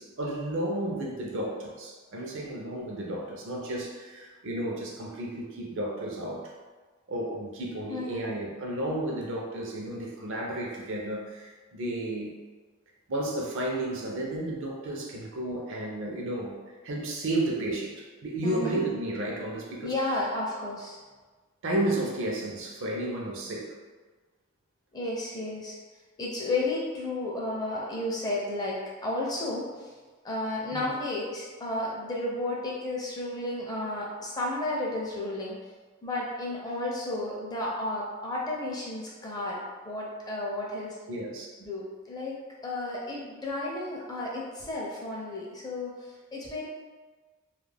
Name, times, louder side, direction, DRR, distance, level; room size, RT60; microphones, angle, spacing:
voice 1, 0.0-6.4 7.1-12.3 13.1-16.6 16.8-19.9 21.6-23.8 30.7-30.9 41.1-41.5, right 1 dB, 60° right, -1 dB, 0.5 m, -32 dB
voice 2, 7.9-8.2 18.4-18.8 19.8-21.0 24.9-25.8 26.2-29.9 30.2-35.6 36.0-39.6 39.8-41.0 41.6-42.4 42.6-46.7, left 2 dB, 20° left, -4 dB, 0.5 m, -32 dB
2.3 x 2.1 x 3.3 m, 1.4 s
head